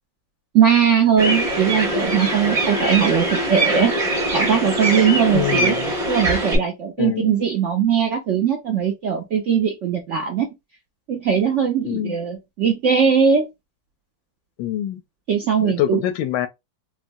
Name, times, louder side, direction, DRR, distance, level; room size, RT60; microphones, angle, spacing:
voice 1, 0.5-3.9 4.3-5.7 6.1-10.5 11.1-13.5 15.3-16.0, right 7 dB, 70° right, 0.7 m, -19 dB
sound 1, 1.2-6.6, right 1 dB, 25° right, 1.0 m, -22 dB
voice 2, 5.3-5.9 7.0-7.4 11.8-12.2 14.6-15.0 15.6-16.5, left 12 dB, 85° left, 1.3 m, -25 dB
3.7 x 2.1 x 2.6 m
omnidirectional pair, 2.0 m